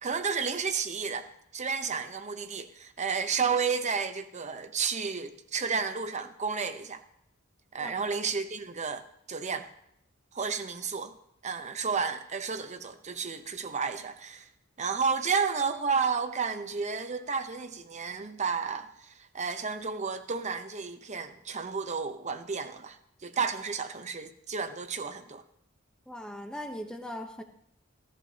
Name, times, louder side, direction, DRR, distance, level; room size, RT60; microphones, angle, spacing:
voice 1, 0.0-1.3 1.5-7.0 7.7-9.7 10.3-11.2 11.4-14.5 14.8-23.0 23.2-25.4, right 5 dB, 35° right, 0.8 m, -32 dB
voice 2, 26.1-27.4, left 1 dB, 5° left, 0.9 m, -39 dB
16.0 x 14.0 x 2.8 m
head